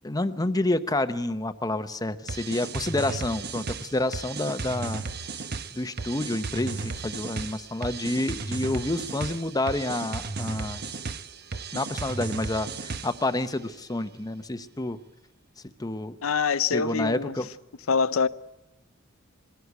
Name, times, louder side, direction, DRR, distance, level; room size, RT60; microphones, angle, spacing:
voice 1, 0.0-5.0 5.7-10.9 11.7-15.0 15.6-16.2 16.7-17.5, left 2 dB, 20° left, 0.8 m, -29 dB
sound 1, 2.3-13.3, right 4 dB, 50° right, 0.9 m, -35 dB
voice 2, 16.2-17.3 17.9-18.3, left 5 dB, 90° left, 0.7 m, -24 dB
22.5 x 16.0 x 8.3 m
head